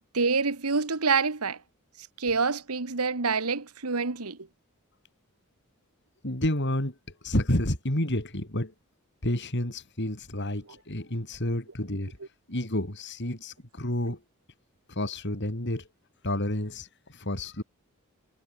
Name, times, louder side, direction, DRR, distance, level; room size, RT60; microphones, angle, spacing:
voice 1, 0.1-1.6 2.2-4.4, right 4 dB, 90° right, 1.6 m, -26 dB
voice 2, 6.2-6.9 7.2-8.7 9.2-12.2 12.5-14.2 14.9-15.8 16.2-16.9 17.2-17.6, left 1 dB, 55° left, 4.8 m, -29 dB
head